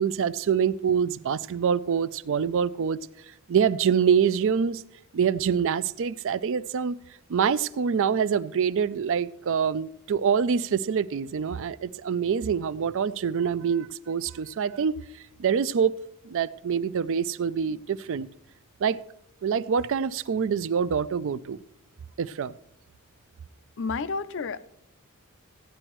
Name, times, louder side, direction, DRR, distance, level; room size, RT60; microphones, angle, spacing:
voice 1, 0.0-3.0 3.5-4.8 5.1-7.0 7.3-15.0 15.4-15.9 16.2-18.3 18.8-19.0 19.4-21.6 22.2-22.5, right 7 dB, 60° right, 18 dB, 0.4 m, -25 dB
voice 2, 23.8-24.6, left 4 dB, 60° left, 14 dB, 0.5 m, -30 dB
15.0 x 9.8 x 3.1 m, 0.79 s
head